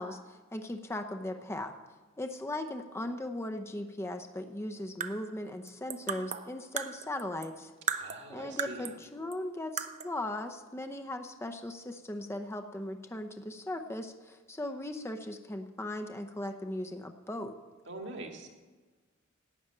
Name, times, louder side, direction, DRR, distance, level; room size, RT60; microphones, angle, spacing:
voice 1, 0.0-1.7 2.2-7.7 8.3-17.5, left 1 dB, 15° left, 5 dB, 0.6 m, -38 dB
sound 1, 4.8-7.6 7.9-9.0 9.3-9.4 9.8-10.2, right 6 dB, 35° right, 0.6 m, -37 dB
voice 2, 8.0-8.9 17.9-18.5, right 2 dB, 60° right, 3 dB, 1.8 m, -43 dB
12.0 x 8.5 x 8.9 m, 1.3 s
head